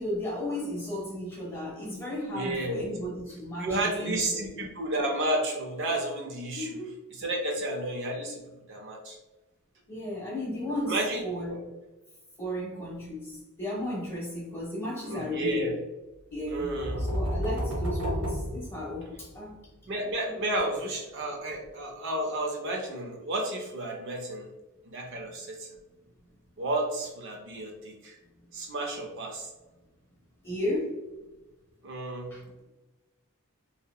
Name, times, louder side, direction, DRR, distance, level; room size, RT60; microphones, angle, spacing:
voice 1, 0.0-4.7 6.5-6.9 9.9-11.7 12.4-15.7 16.3-16.7 17.0-19.9 20.2-20.3 30.4-31.0 32.3-32.4, left 1 dB, 10° left, -4 dB, 0.7 m, -34 dB
voice 2, 2.3-2.8 3.6-6.8 7.1-8.4 8.7-9.2 10.7-11.2 11.5-11.6 15.1-15.7 16.5-17.1 19.9-24.5 24.9-25.7 26.6-28.2 28.5-29.5 31.8-32.3, right 1 dB, 55° right, 1 dB, 0.4 m, -32 dB
sound 1, 16.4-19.4, equal, 70° right, 0.8 m, -31 dB
2.7 x 2.0 x 2.2 m, 1.1 s
head